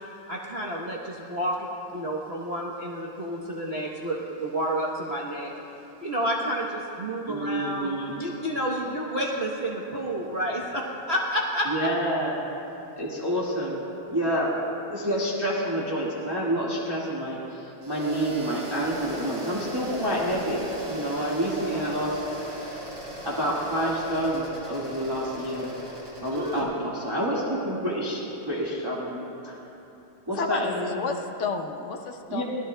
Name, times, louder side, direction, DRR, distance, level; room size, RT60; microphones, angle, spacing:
voice 1, 0.3-5.5 6.0-11.9 21.6-21.9 26.3-26.9, equal, 45° right, -4 dB, 0.9 m, -30 dB
voice 2, 7.3-8.1 11.7-12.5 13.0-13.8 14.1-14.5 14.9-22.2 23.2-25.7 26.2-29.2 29.4-29.5 30.3-31.0 32.3-32.4, equal, 15° right, -6 dB, 1.4 m, -28 dB
sound 1, 17.8-26.6, equal, 65° right, 4.0 m, -38 dB
voice 3, 30.3-32.4, left 4 dB, 65° left, 4 dB, 0.7 m, -31 dB
23.0 x 17.5 x 2.2 m, 2.9 s
omnidirectional pair, 2.2 m